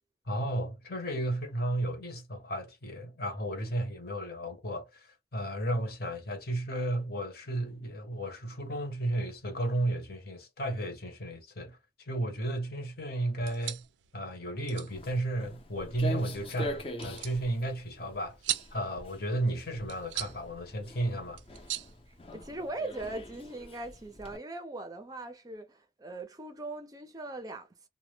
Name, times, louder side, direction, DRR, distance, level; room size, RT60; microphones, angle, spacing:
voice 1, 0.3-5.1 5.3-11.8 12.1-13.8 14.1-18.4 18.7-21.4, right 1 dB, 55° left, 0.8 m, -33 dB
sound 1, 13.3-22.8, right 13 dB, 85° right, 0.4 m, -42 dB
Walk footsteps, 14.9-24.4, left 1 dB, 30° left, 0.5 m, -43 dB
voice 2, 22.1-27.9, right 2 dB, 20° right, 0.4 m, -40 dB
2.1 x 2.1 x 3.2 m
head